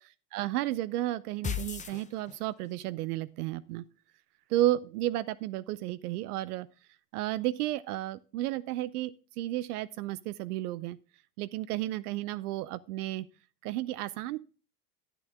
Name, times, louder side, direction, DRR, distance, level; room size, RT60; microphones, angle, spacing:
voice 1, 0.3-3.8 4.5-6.7 7.1-11.0 11.4-13.3 13.6-14.4, right 15 dB, 70° right, 15 dB, 0.7 m, -32 dB
sound 1, 1.4-2.7, left 7 dB, 15° left, 0.8 m, -36 dB
10.0 x 8.9 x 3.5 m, 0.35 s
hypercardioid pair, 105°, 47 cm